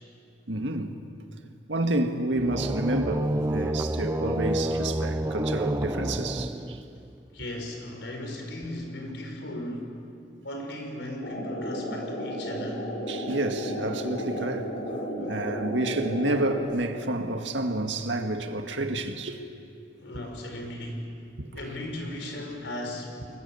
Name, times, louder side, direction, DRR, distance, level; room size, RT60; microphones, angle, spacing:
voice 1, 0.5-1.0 1.7-6.8 13.1-19.4 21.4-21.5, right 1 dB, 90° right, 1.9 m, -29 dB
sound 1, 2.3-7.1, right 1 dB, 15° right, 0.7 m, -29 dB
voice 2, 7.3-10.0 10.4-12.9 15.2-15.3 20.0-21.2 21.5-23.4, left 1 dB, 75° left, 4.9 m, -37 dB
sound 2, 11.2-16.6, equal, 60° left, 6.0 m, -33 dB
30.0 x 22.0 x 7.2 m
head